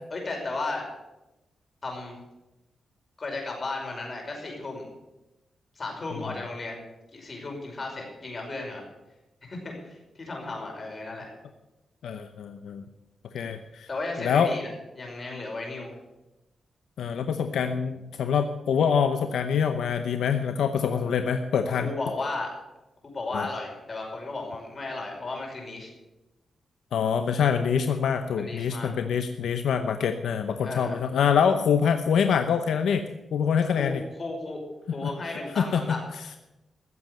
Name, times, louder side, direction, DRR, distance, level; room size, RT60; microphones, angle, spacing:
voice 1, 0.1-0.9 1.8-2.2 3.2-4.9 5.8-6.8 7.1-8.8 9.4-11.3 13.9-14.7 14.9-16.0 21.8-22.5 23.0-25.9 28.4-28.9 30.6-31.0 33.8-34.6 34.9-36.0, left 2 dB, 40° left, 1 dB, 5.5 m, -34 dB
voice 2, 12.0-12.8 13.3-13.9 14.2-14.5 17.0-21.9 23.3-23.5 26.9-33.0 33.3-34.0 35.0-35.1 35.6-35.8, left 7 dB, 90° left, 8 dB, 0.8 m, -25 dB
15.5 x 7.6 x 8.1 m, 1.0 s
cardioid pair, 90°, 0 cm